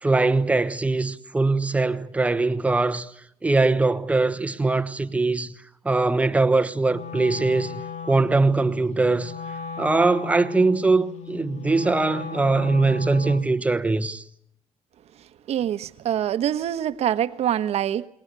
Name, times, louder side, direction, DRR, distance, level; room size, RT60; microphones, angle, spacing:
voice 1, 0.0-3.1 3.4-5.5 5.8-7.8 8.1-9.3 9.8-14.2, right 3 dB, 10° right, 1.2 m, -21 dB
Wind instrument woodwind instrument, 6.9-13.6, left 6 dB, 65° left, 2.3 m, -37 dB
voice 2, 15.5-18.1, right 10 dB, 60° right, 1.3 m, -25 dB
29.5 x 21.5 x 8.3 m
cardioid pair, 170°, 12 cm